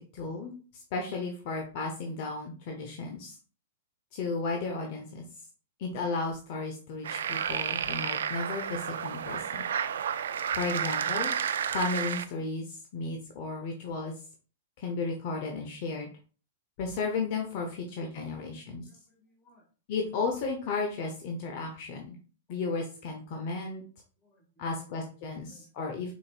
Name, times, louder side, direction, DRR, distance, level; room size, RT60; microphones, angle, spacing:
voice 1, 0.1-3.4 4.1-5.2 5.8-9.6 10.5-11.4 11.7-14.1 14.8-16.1 16.8-18.8 19.9-22.2 22.5-23.8 24.6-26.1, left 3 dB, 50° left, 2 dB, 0.8 m, -34 dB
sound 1, 7.0-12.2, right 8 dB, 75° right, 0.4 m, -31 dB
voice 2, 18.2-19.7 24.2-24.9 25.5-26.1, equal, 20° left, 1 dB, 1.7 m, -61 dB
5.0 x 3.9 x 2.4 m, 0.39 s
hypercardioid pair, 125°, 0 cm